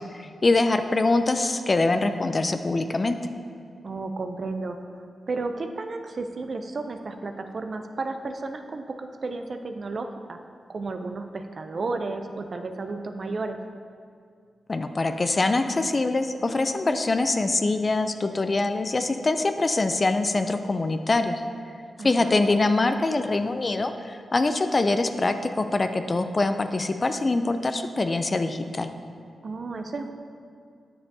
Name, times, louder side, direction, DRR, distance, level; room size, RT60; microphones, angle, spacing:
voice 1, 0.1-3.2 14.7-21.4 22.0-28.9, left 2 dB, 35° left, 8 dB, 0.3 m, -24 dB
voice 2, 3.8-4.8 5.3-10.4 10.7-13.6 22.0-22.4 29.4-30.1, right 3 dB, 50° right, 6 dB, 0.4 m, -33 dB
8.6 x 6.5 x 2.7 m, 2.3 s
cardioid pair, 90°, 0 cm